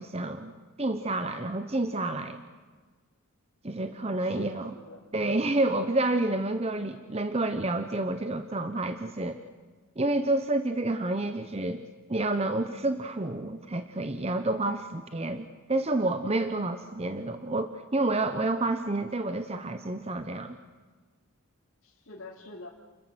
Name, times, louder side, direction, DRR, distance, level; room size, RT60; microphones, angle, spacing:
voice 1, 0.0-2.4 3.6-4.7 5.1-9.4 10.0-11.8 12.1-20.6, right 2 dB, 30° right, 9 dB, 0.9 m, -29 dB
voice 2, 3.8-5.0 16.5-16.8 21.8-22.7, left 2 dB, 70° left, -4 dB, 2.9 m, -47 dB
29.5 x 14.5 x 7.8 m, 1.4 s
head